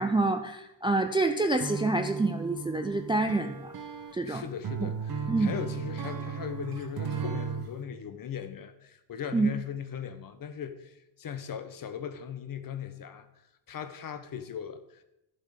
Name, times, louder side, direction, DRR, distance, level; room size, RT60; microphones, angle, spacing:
voice 1, 0.0-3.7 4.1-4.4 4.8-4.9 5.3-5.5 9.3-9.5, right 2 dB, 10° right, 0.4 m, -27 dB
sound 1, 1.6-7.7, right 6 dB, 45° right, 1.5 m, -36 dB
voice 2, 4.2-13.3 13.7-15.0, left 8 dB, 40° left, 1.0 m, -39 dB
11.5 x 7.6 x 4.9 m
cardioid pair, 135°, 50 cm